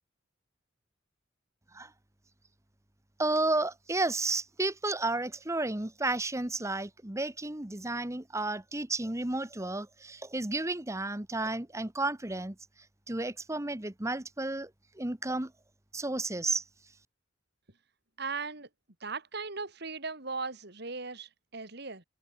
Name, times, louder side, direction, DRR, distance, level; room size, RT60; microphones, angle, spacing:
voice 1, 3.2-12.5 13.1-14.7 14.9-15.5 15.9-16.6, right 2 dB, 15° right, 1.2 m, -32 dB
voice 2, 18.2-18.7 19.0-22.0, right 4 dB, 55° right, 3.6 m, -38 dB
head